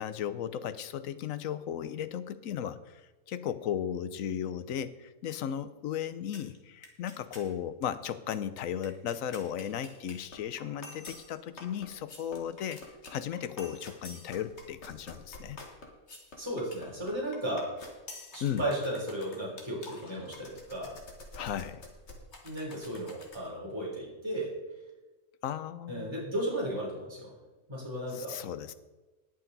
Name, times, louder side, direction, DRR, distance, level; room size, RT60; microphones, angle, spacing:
voice 1, 0.0-3.0 3.3-12.8 13.1-15.6 18.4-18.6 21.4-21.8 25.4-26.1 28.1-28.7, left 9 dB, 85° left, 13 dB, 1.1 m, -35 dB
sound 1, 6.3-6.6 6.8-7.5 7.8-7.9 8.1-23.5, left 2 dB, 55° left, 2.1 m, -48 dB
voice 2, 16.4-17.7 18.3-20.9 22.4-24.5 25.9-27.3 27.7-28.4, right 1 dB, 20° right, -5 dB, 3.6 m, -35 dB
20.0 x 6.7 x 4.0 m, 1.1 s
omnidirectional pair, 1.4 m